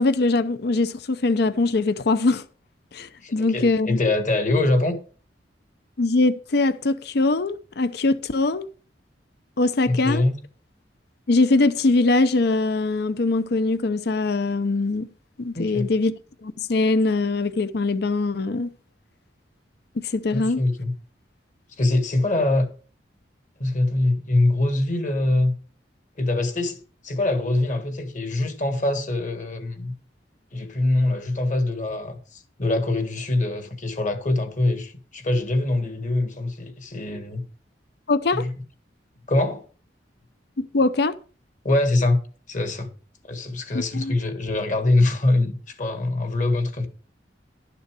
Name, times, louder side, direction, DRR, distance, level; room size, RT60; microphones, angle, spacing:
voice 1, 0.0-2.4 2.9-4.0 6.0-8.7 9.6-10.2 11.3-15.1 15.4-16.1 16.4-18.7 20.0-20.6 38.1-38.4 40.6-41.1 43.7-44.1, left 3 dB, 60° left, 0.6 m, -22 dB
voice 2, 3.2-5.0 9.9-10.4 15.6-15.9 20.3-20.9 21.8-22.7 23.6-25.5 26.2-26.8 27.0-29.9 30.5-37.4 38.3-38.5 39.3-39.6 41.6-42.2 42.5-42.9 43.3-46.9, left 2 dB, 45° left, 1.7 m, -23 dB
12.0 x 6.9 x 4.8 m
head